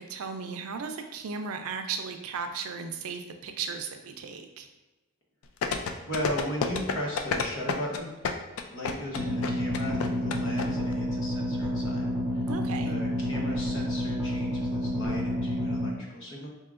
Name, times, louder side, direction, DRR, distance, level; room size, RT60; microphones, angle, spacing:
voice 1, 0.0-4.7 12.5-12.9, right 5 dB, 90° right, 6 dB, 0.4 m, -36 dB
sound 1, 5.6-10.7 10.9-11.0, left 5 dB, 80° left, 0.4 m, -29 dB
voice 2, 6.0-8.4 8.7-12.5 12.8-16.5, equal, 60° left, -2 dB, 0.9 m, -37 dB
sound 2, 9.1-15.9, left 1 dB, 5° right, 0.7 m, -29 dB
4.6 x 2.8 x 2.4 m, 1.1 s
head